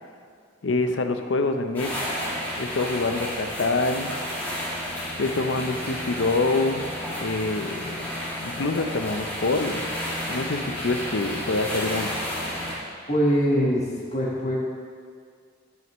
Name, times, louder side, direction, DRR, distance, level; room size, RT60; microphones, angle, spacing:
voice 1, 0.6-2.1 2.6-4.1 5.2-6.9 7.2-8.1 8.4-9.8 10.3-12.2, left 3 dB, 75° left, 7 dB, 0.6 m, -26 dB
sound 1, 1.7-12.7, equal, 10° left, 2.4 m, -31 dB
voice 2, 13.1-13.8 14.1-14.6, equal, 35° left, -5 dB, 1.4 m, -22 dB
14.0 x 6.5 x 3.1 m, 2.1 s
head